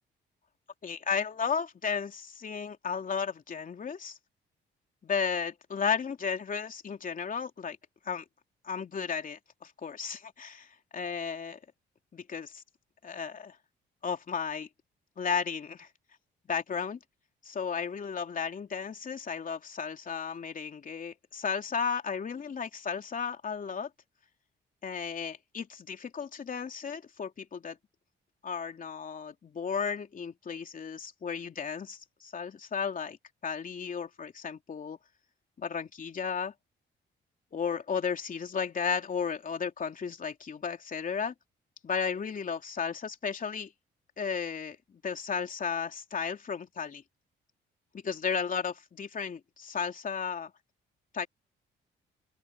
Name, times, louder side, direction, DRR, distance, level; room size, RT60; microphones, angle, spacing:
voice 1, 0.8-4.2 5.0-7.8 8.0-8.2 8.6-11.6 12.1-12.6 13.0-13.6 14.0-14.7 15.2-15.9 16.5-17.0 17.4-23.9 24.8-27.8 28.4-33.2 33.4-35.0 35.6-36.5 37.5-41.3 41.8-43.7 44.2-44.8 45.0-47.0 47.9-50.5 51.1-51.3, left 6 dB, 45° left, 3.0 m, -34 dB
open air
cardioid pair, 90°, 20 cm